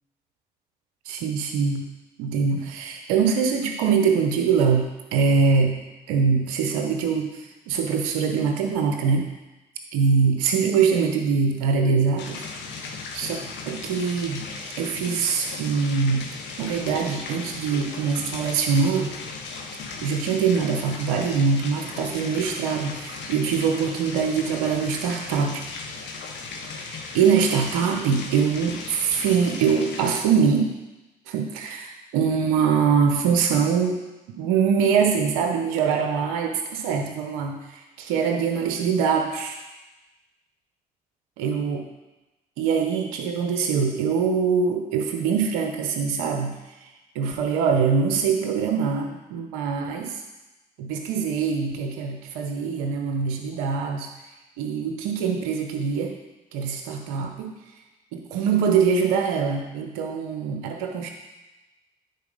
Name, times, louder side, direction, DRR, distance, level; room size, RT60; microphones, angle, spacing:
voice 1, 1.1-1.9 2.2-5.8 6.1-7.4 7.7-9.3 9.9-12.4 13.1-13.4 13.7-14.4 14.8-16.3 16.6-19.1 20.0-25.6 26.7-30.7 31.3-34.0 34.3-39.6 41.4-41.8 42.6-46.6 47.1-50.2 50.8-54.1 54.6-56.1 56.5-57.5 58.1-61.1, right 6 dB, 90° right, 3 dB, 0.8 m, -23 dB
sound 1, 12.2-30.2, left 4 dB, 75° left, 1.1 m, -37 dB
9.4 x 4.3 x 5.3 m, 1.1 s
hypercardioid pair, 50°, 19 cm